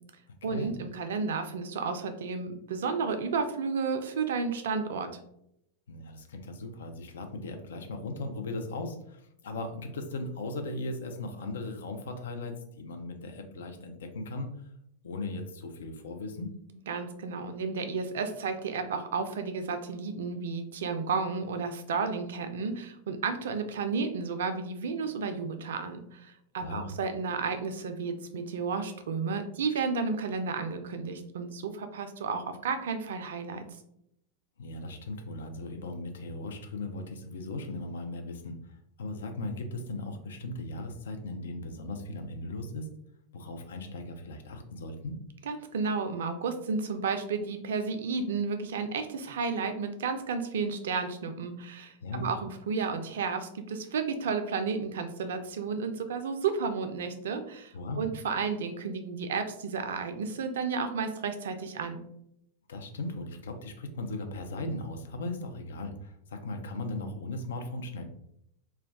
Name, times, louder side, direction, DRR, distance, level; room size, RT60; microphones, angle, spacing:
voice 1, 0.4-5.1 16.9-33.6 45.5-62.0, right 5 dB, 60° right, 8 dB, 0.3 m, -32 dB
voice 2, 5.9-14.7 15.0-16.6 26.6-26.9 34.6-42.9 43.3-45.2 52.0-52.2 57.7-58.0 62.7-68.0, left 2 dB, 65° left, 5 dB, 0.4 m, -38 dB
2.2 x 2.2 x 3.4 m, 0.75 s
figure-of-eight pair, 90°, 0 cm